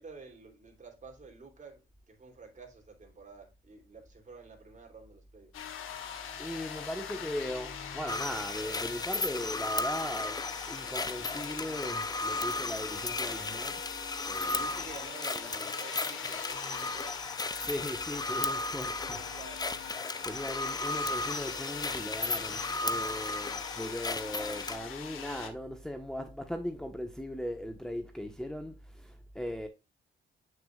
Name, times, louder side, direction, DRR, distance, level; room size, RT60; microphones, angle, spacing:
voice 1, 0.0-5.5 14.4-17.2 18.8-19.6, right 4 dB, 35° right, 3.3 m, -50 dB
sound 1, 5.5-25.5, left 8 dB, 85° left, 1.8 m, -43 dB
voice 2, 6.4-14.0 14.3-14.7 17.6-19.2 20.2-29.7, equal, 5° left, 1.2 m, -38 dB
sound 2, 8.1-24.8, left 3 dB, 20° left, 0.6 m, -35 dB
8.6 x 6.3 x 2.4 m
cardioid pair, 90°, 21 cm